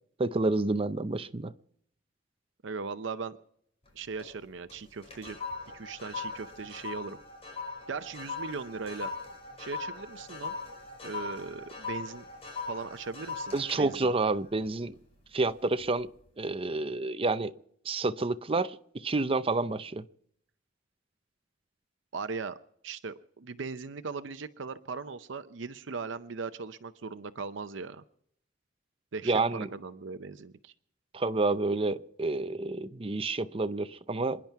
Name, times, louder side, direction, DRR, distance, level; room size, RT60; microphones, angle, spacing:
voice 1, 0.2-1.5 13.5-15.0 15.3-16.1 16.4-17.5 17.8-20.0 29.2-29.7 31.1-34.4, right 3 dB, 30° right, 0.6 m, -29 dB
voice 2, 2.6-3.4 3.9-5.4 5.7-7.2 7.9-9.1 9.6-10.6 11.0-12.2 12.7-14.1 22.1-22.6 22.8-28.0 29.1-30.7, right 4 dB, 70° right, 0.6 m, -39 dB
sound 1, 3.9-4.4 4.7-15.3 15.7-16.0, left 4 dB, 30° left, 5.0 m, -40 dB
27.0 x 10.5 x 4.6 m
head